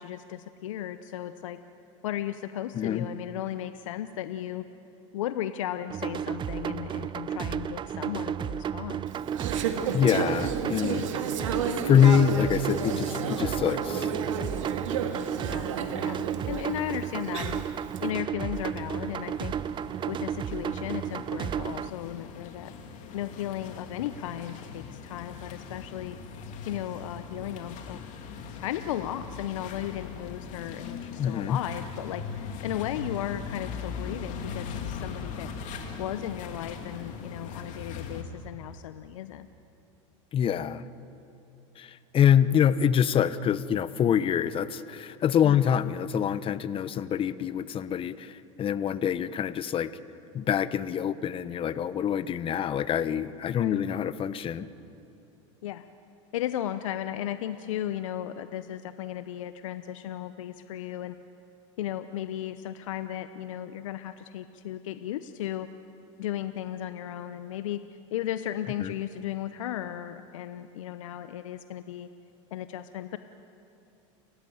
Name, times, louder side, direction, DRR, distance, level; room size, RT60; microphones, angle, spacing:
voice 1, 0.0-1.6 2.0-4.6 5.1-9.0 15.4-15.7 15.9-16.2 16.5-17.6 18.0-19.5 20.1-22.7 23.1-26.2 26.7-28.0 28.6-35.5 36.0-39.5 45.4-45.6 53.6-53.8 55.6-55.9 56.3-61.2 61.8-65.7 66.2-67.8 68.1-72.1 72.5-73.2, left 12 dB, 80° left, 11 dB, 0.8 m, -35 dB
voice 2, 2.7-3.1 9.9-11.1 11.5-11.6 11.8-14.1 31.2-31.6 40.3-40.8 41.8-49.9 50.3-54.7 68.8-68.9, left 8 dB, 35° left, 15 dB, 0.9 m, -25 dB
sound 1, 5.9-21.9, right 9 dB, 30° right, 0.6 m, -33 dB
Conversation / Chatter, 9.1-18.0, right 6 dB, 85° right, 2.1 m, -33 dB
sound 2, 18.5-38.2, left 5 dB, 50° left, 2.7 m, -40 dB
30.0 x 14.5 x 9.3 m, 2.8 s
hypercardioid pair, 100°, 16 cm